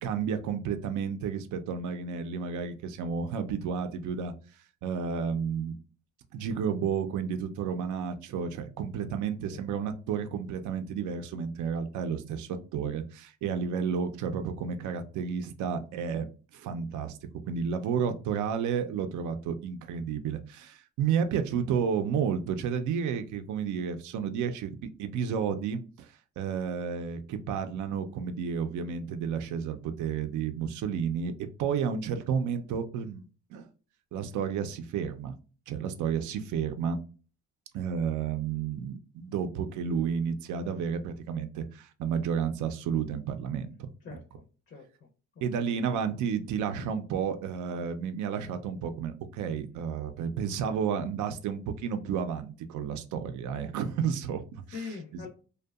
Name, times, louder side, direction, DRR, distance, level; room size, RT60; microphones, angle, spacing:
voice 1, 0.0-4.3 4.8-5.7 6.3-16.2 16.5-17.2 17.4-31.3 31.6-33.2 33.5-33.7 34.1-35.3 35.7-37.0 37.7-44.2 45.4-54.9 55.1-55.2, right 7 dB, 80° right, 8 dB, 0.5 m, -31 dB
voice 2, 44.0-44.9 45.5-45.8 54.7-55.3, left 5 dB, 40° left, 1 dB, 0.5 m, -43 dB
2.6 x 2.2 x 2.2 m, 0.37 s
cardioid pair, 90°, 30 cm